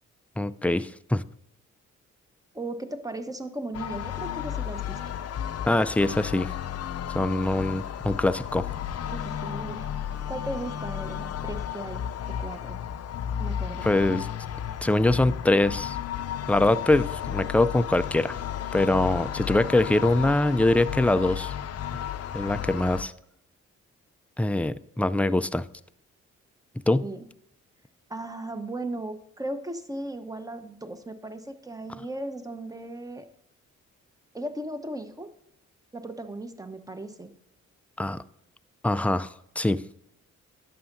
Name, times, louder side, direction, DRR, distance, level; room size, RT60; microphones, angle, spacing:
voice 1, 0.4-1.2 5.7-6.5 7.1-8.7 13.8-14.3 14.8-16.0 16.5-18.4 18.7-21.5 22.3-23.1 24.4-25.7 26.9-27.1 38.0-38.2 38.8-39.8, left 2 dB, 5° left, 13 dB, 0.4 m, -23 dB
voice 2, 2.5-5.0 9.1-9.9 10.3-12.8 13.4-13.9 27.0-27.3 28.1-33.3 34.3-35.3 35.9-37.3, right 1 dB, 10° right, 9 dB, 1.1 m, -36 dB
sound 1, 3.7-23.0, left 9 dB, 50° left, 0.6 m, -33 dB
11.0 x 7.3 x 2.7 m, 0.76 s
supercardioid pair, 50°, 31 cm